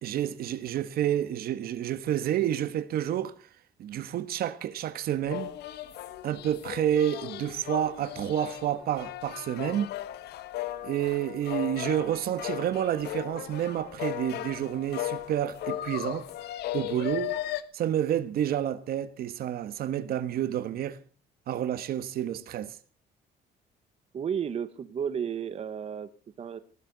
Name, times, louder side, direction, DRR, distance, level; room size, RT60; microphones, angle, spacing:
voice 1, 0.0-3.3 3.8-5.5 6.2-9.9 10.8-16.3 16.7-17.4 17.7-21.0 21.5-22.8, right 11 dB, 65° right, 1.4 m, -29 dB
sound 1, 5.2-17.6, left 14 dB, 85° left, 1.3 m, -36 dB
voice 2, 24.1-26.1 26.4-26.6, right 8 dB, 40° right, 1.0 m, -32 dB
19.0 x 15.5 x 4.0 m
cardioid pair, 150°, 17 cm